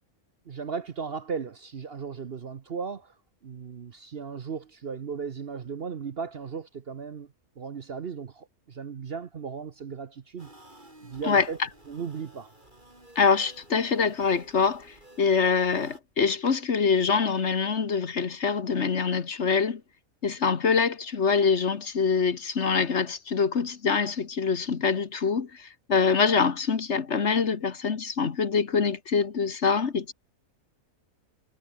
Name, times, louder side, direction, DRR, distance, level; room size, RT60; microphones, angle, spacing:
voice 1, 0.5-3.1 3.4-7.3 7.6-10.5 11.0-11.6 11.9-12.5, right 6 dB, 45° right, 1.0 m, -36 dB
sound 1, 10.4-16.0, right 1 dB, 30° right, 6.3 m, -53 dB
voice 2, 13.1-19.8 20.2-30.1, left 5 dB, 50° left, 1.6 m, -25 dB
omnidirectional pair, 1.5 m